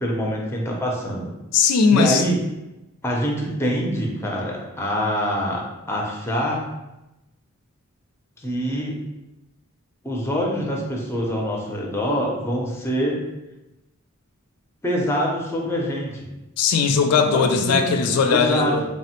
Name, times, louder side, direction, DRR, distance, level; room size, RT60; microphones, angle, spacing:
voice 1, 0.0-1.3 1.9-2.4 3.0-6.6 8.4-9.0 10.0-13.2 14.8-16.3 17.3-18.0 18.3-18.7, equal, 10° left, -1 dB, 0.4 m, -25 dB
voice 2, 1.5-2.2 16.6-18.8, left 5 dB, 90° left, 6 dB, 0.3 m, -19 dB
3.3 x 2.0 x 2.8 m, 0.97 s
head